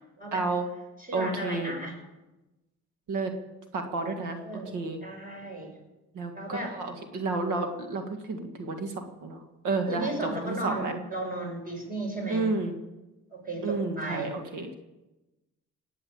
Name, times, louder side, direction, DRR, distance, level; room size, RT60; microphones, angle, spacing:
voice 1, 0.3-0.6 1.1-1.7 3.1-3.3 3.7-4.4 4.7-5.0 6.1-10.9 12.3-12.8 13.6-14.7, right 3 dB, 80° right, 5 dB, 2.0 m, -31 dB
voice 2, 1.0-1.9 4.4-5.7 6.3-6.8 9.9-12.5 13.3-14.3, right 2 dB, 30° right, 1 dB, 6.8 m, -34 dB
19.0 x 8.5 x 8.6 m, 1.0 s
cardioid pair, 90°, 30 cm